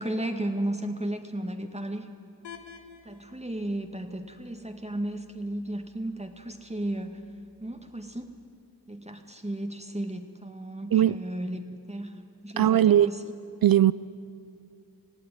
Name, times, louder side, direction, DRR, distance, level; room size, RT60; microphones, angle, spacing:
voice 1, 0.0-2.1 3.1-7.2 7.6-8.4 8.9-13.3, right 1 dB, 15° right, 5 dB, 1.7 m, -34 dB
sound 1, 2.4-8.4, left 6 dB, 90° left, 1.4 m, -53 dB
voice 2, 12.6-13.1 13.6-13.9, right 11 dB, 60° right, 17 dB, 0.5 m, -19 dB
20.0 x 15.0 x 9.8 m, 2.5 s
cardioid pair, 40°, 41 cm